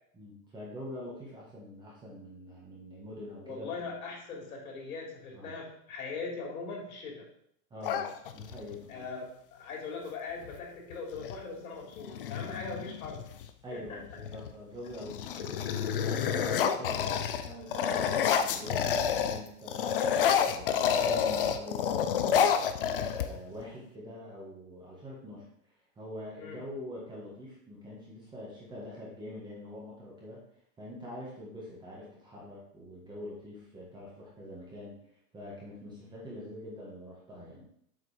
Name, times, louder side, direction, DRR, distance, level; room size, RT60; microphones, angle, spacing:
voice 1, 0.1-3.7 5.3-5.5 7.7-8.0 8.3-9.1 13.6-18.9 19.3-20.0 20.3-22.7 23.2-25.5 25.9-30.4 30.8-34.9 35.3-37.7, left 1 dB, 10° right, -5 dB, 1.6 m, -44 dB
voice 2, 3.4-7.3 8.9-13.2 13.7-14.0 16.6-16.7 19.8-20.0 26.4-26.6, left 4 dB, 65° left, -1 dB, 3.4 m, -40 dB
sound 1, 7.8-8.8 10.4-10.6 10.9-11.4 12.0-13.5 14.1-14.5 14.9-19.4 19.7-23.6, left 8 dB, 40° left, 0.4 m, -29 dB
7.6 x 5.3 x 4.9 m, 0.70 s
supercardioid pair, 165°, 46 cm